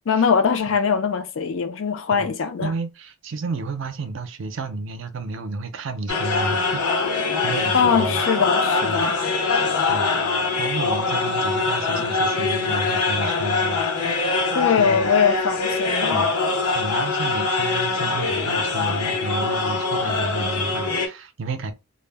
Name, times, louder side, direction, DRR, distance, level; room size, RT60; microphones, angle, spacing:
voice 1, 0.1-2.7 7.7-9.1 14.5-16.2, left 6 dB, 60° left, 0.4 m, -21 dB
voice 2, 2.6-8.2 8.8-9.1 9.9-10.1 10.6-14.4 14.8-15.1 16.1-16.3 16.7-21.7, right 3 dB, 60° right, 0.4 m, -31 dB
sound 1, 6.1-21.1, left 4 dB, 85° left, 0.8 m, -23 dB
2.1 x 2.0 x 3.3 m
head